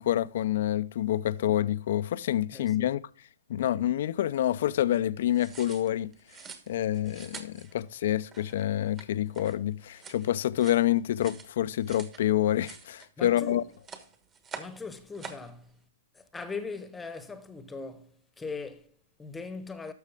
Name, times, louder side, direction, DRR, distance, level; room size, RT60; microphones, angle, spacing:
voice 1, 0.0-3.0 3.5-6.1 6.7-13.6, left 12 dB, 55° left, 0.5 m, -27 dB
voice 2, 2.5-2.9 13.2-13.6 14.6-15.7 16.1-19.9, left 4 dB, 10° left, 1.0 m, -40 dB
sound 1, 5.3-12.2 12.5-13.4 13.7-14.8 15.1-15.5, right 5 dB, 20° right, 1.3 m, -47 dB
12.5 x 6.4 x 3.5 m
hypercardioid pair, 130°, 0 cm